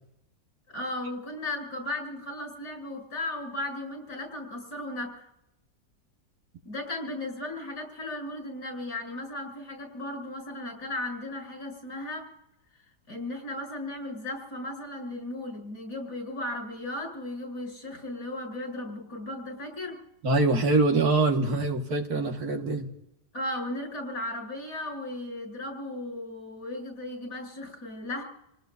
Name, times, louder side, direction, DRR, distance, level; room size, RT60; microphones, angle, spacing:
voice 1, 0.7-5.3 6.6-12.3 13.1-20.0 23.3-28.2, left 1 dB, 85° left, 2 dB, 7.8 m, -36 dB
voice 2, 20.2-22.9, right 3 dB, 65° right, 3 dB, 2.2 m, -24 dB
29.5 x 18.5 x 2.7 m, 0.82 s
omnidirectional pair, 1.8 m